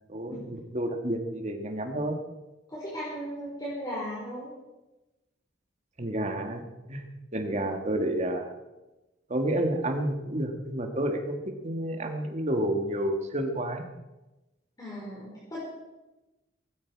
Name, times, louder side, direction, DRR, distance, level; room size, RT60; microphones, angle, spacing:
voice 1, 0.0-2.2 6.0-6.6 6.9-8.5 9.3-13.9, right 1 dB, 35° right, 4 dB, 2.0 m, -30 dB
voice 2, 2.7-4.5 14.8-15.6, equal, 20° left, -7 dB, 4.8 m, -36 dB
18.0 x 16.0 x 4.8 m, 1.0 s
head